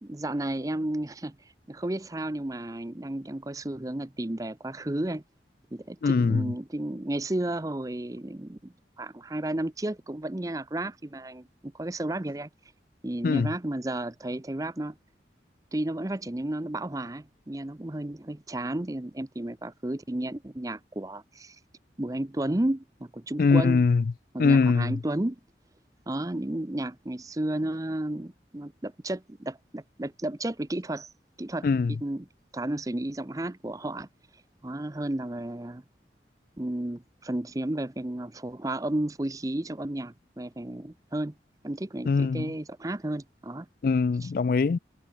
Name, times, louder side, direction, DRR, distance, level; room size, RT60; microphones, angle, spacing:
voice 1, 0.0-5.2 5.7-12.5 13.0-14.9 15.7-21.6 22.0-23.8 24.3-25.4 26.1-31.1 31.4-32.2 32.5-34.1 34.3-35.8 36.6-41.3 41.6-43.7 44.2-44.3, right 1 dB, 20° right, 0.6 m, -33 dB
voice 2, 6.0-6.5 13.2-13.5 23.4-24.0 24.4-25.0 31.6-31.9 42.1-42.5 43.8-44.8, left 4 dB, 50° left, 0.3 m, -22 dB
head